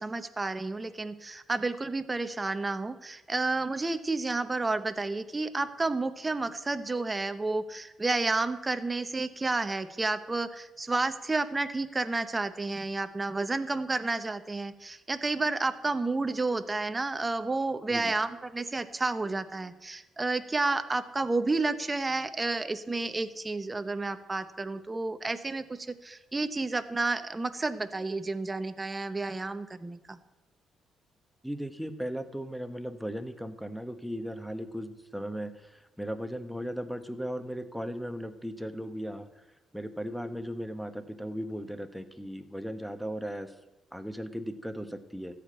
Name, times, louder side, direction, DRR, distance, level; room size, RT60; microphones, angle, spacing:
voice 1, 0.0-30.2, right 3 dB, 20° right, 11 dB, 0.8 m, -31 dB
voice 2, 31.4-39.4 39.7-43.5 43.9-45.4, equal, ahead, 9 dB, 1.1 m, -37 dB
14.0 x 5.1 x 8.9 m, 1.0 s
cardioid pair, 90°, 0 cm